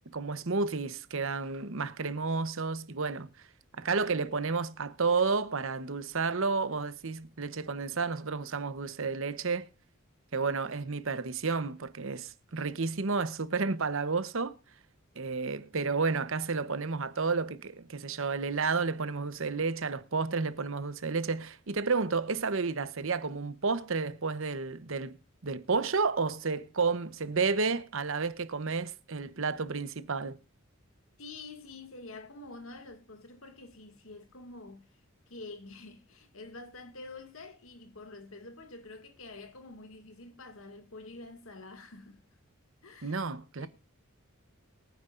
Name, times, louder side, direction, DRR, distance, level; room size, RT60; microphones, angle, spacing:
voice 1, 0.1-3.3 3.8-9.7 10.3-14.5 15.2-25.2 25.4-30.4 43.0-43.7, right 4 dB, 65° right, 1.0 m, -31 dB
voice 2, 31.2-34.9 35.3-42.2 42.8-43.3 43.6-43.7, left 3 dB, 75° left, 2.2 m, -47 dB
23.0 x 9.5 x 2.5 m
head